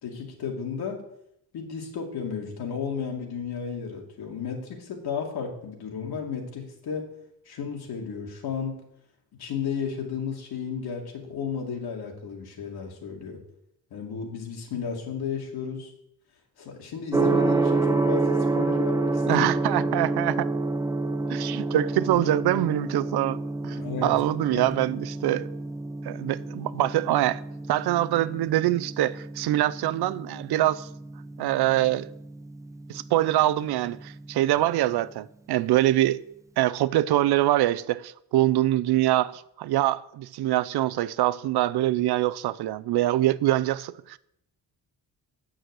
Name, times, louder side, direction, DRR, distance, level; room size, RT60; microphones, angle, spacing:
voice 1, 0.0-1.0 1.5-7.1 7.5-8.8 9.4-13.4 13.9-15.9 16.6-19.5 19.7-19.9 23.8-24.1 24.5-24.6, left 6 dB, 85° left, 2.5 m, -33 dB
Gong, 17.1-35.0, right 3 dB, 10° right, 0.6 m, -29 dB
voice 2, 19.3-20.5 21.3-25.5 26.0-27.4 27.7-30.9 31.4-32.1 32.9-36.2 36.6-44.2, right 14 dB, 85° right, 0.6 m, -24 dB
9.1 x 6.4 x 7.9 m
wide cardioid pair, 170°, 38 cm